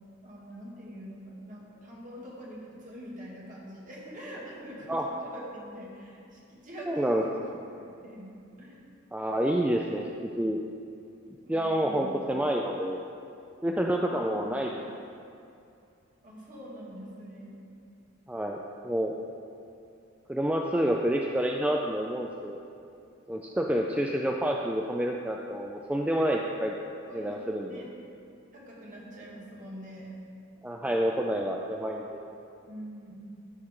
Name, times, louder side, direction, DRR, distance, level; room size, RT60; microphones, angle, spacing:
voice 1, 0.2-7.4 7.8-8.8 11.4-12.1 14.0-14.6 16.2-17.6 27.0-27.9 28.5-30.1 32.7-33.1, equal, 40° right, -5 dB, 2.0 m, -44 dB
voice 2, 6.9-7.2 9.1-10.6 11.5-13.0 13.6-14.8 18.3-19.1 20.3-22.6 23.3-26.7 27.1-27.9 30.6-32.2, right 1 dB, 5° right, 0 dB, 0.3 m, -28 dB
13.0 x 6.5 x 3.7 m, 2.5 s
head